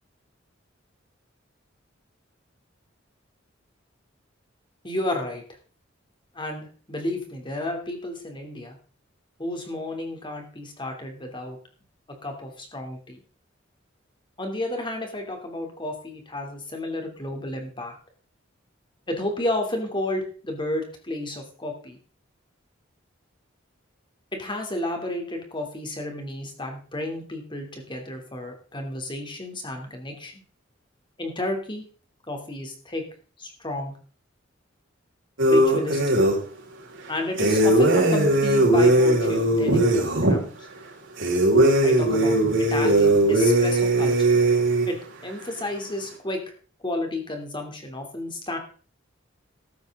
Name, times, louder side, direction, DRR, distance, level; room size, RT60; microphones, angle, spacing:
voice 1, 4.8-5.4 6.3-8.7 9.4-11.6 12.2-13.2 14.4-17.9 19.1-22.0 24.3-30.4 31.2-31.8 32.3-33.0 33.4-33.9 35.5-36.1 37.1-40.7 41.8-42.4 42.7-44.4 44.9-45.0 45.2-46.4 46.8-48.6, left 1 dB, 25° left, 3 dB, 3.0 m, -32 dB
sound 1, 35.4-36.4 37.4-40.4 41.2-44.9, right 1 dB, 75° right, 5.0 m, -19 dB
14.5 x 12.0 x 3.8 m, 0.41 s
head